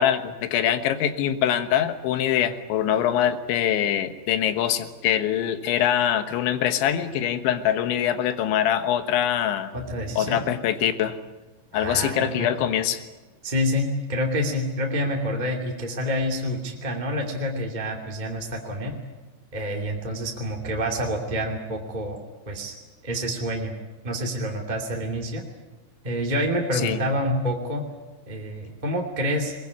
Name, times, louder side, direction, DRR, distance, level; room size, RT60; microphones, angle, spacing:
voice 1, 0.0-9.7 10.2-11.2 11.7-13.0 26.8-27.0, left 10 dB, 80° left, 10 dB, 3.7 m, -23 dB
voice 2, 9.7-10.4 11.7-12.5 13.4-18.9 19.5-22.2 22.4-22.7 23.0-23.7 24.0-25.4 26.0-27.8 28.3-29.5, equal, 15° right, 1 dB, 1.6 m, -27 dB
22.5 x 21.5 x 9.6 m, 1.2 s
omnidirectional pair, 5.2 m